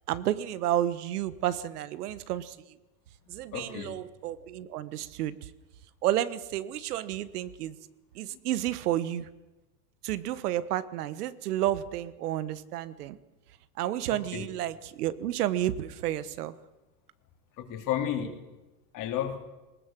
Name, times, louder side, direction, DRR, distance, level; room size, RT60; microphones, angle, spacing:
voice 1, 0.1-2.6 3.3-5.5 6.0-7.8 8.1-9.3 10.0-13.2 13.8-16.6, right 12 dB, 80° right, 15 dB, 1.3 m, -31 dB
voice 2, 3.3-4.0 14.3-14.5 17.6-18.3 18.9-19.4, left 10 dB, 45° left, 4 dB, 3.5 m, -32 dB
19.5 x 19.0 x 7.5 m, 1.1 s
supercardioid pair, 125°, 45 cm